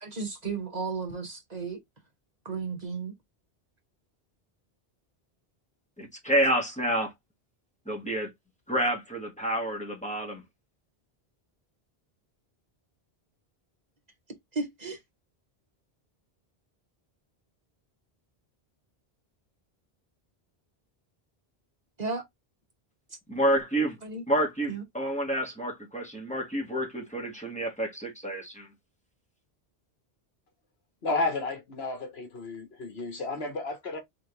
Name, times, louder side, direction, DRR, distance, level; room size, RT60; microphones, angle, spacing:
voice 1, 0.0-1.8 2.4-3.1 14.5-15.0 22.0-22.3 23.1-23.2 24.0-24.2 24.7-24.8, right 4 dB, 40° right, 1.2 m, -34 dB
voice 2, 6.0-7.1 7.9-8.3 8.7-10.4 23.3-24.0 24.3-28.7, right 1 dB, 5° left, 1.7 m, -29 dB
voice 3, 31.0-34.0, left 3 dB, 75° left, 1.5 m, -32 dB
3.8 x 3.4 x 3.3 m
omnidirectional pair, 1.1 m